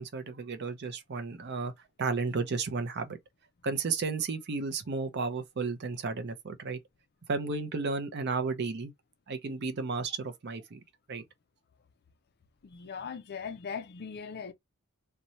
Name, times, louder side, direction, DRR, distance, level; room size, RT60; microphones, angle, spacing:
voice 1, 0.0-1.7 2.0-3.2 3.6-6.8 7.3-8.9 9.3-10.8 11.1-11.2, right 4 dB, 50° right, 0.5 m, -33 dB
voice 2, 12.6-14.5, left 6 dB, 50° left, 0.4 m, -39 dB
2.7 x 2.2 x 3.0 m
head